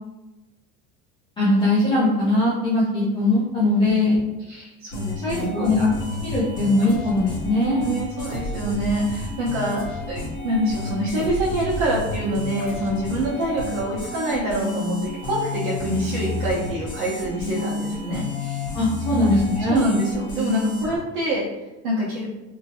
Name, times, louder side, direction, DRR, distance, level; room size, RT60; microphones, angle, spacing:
voice 1, 1.4-4.2 5.2-5.9 6.2-7.8 18.7-19.8, left 2 dB, 15° left, -8 dB, 0.4 m, -20 dB
voice 2, 4.5-5.7 7.8-18.7 19.1-19.2 19.7-21.5 21.8-22.3, right 1 dB, 70° right, -8 dB, 1.0 m, -26 dB
sound 1, 4.9-21.0, left 2 dB, 35° left, 1.1 m, -31 dB
2.9 x 2.6 x 2.7 m, 1.1 s
cardioid pair, 170°, 32 cm